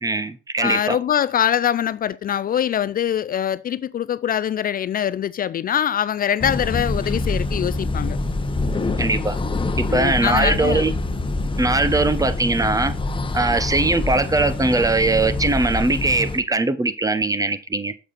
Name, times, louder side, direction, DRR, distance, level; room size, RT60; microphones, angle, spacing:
voice 1, 0.0-1.0 9.0-9.4 9.8-10.9 11.6-12.9 13.3-17.9, right 3 dB, 15° right, 0.9 m, -21 dB
voice 2, 0.6-8.2 9.9-10.9, left 9 dB, 45° left, 0.4 m, -23 dB
sound 1, 6.4-16.4, left 2 dB, 25° left, 1.1 m, -25 dB
7.2 x 6.7 x 4.1 m
cardioid pair, 90°, 20 cm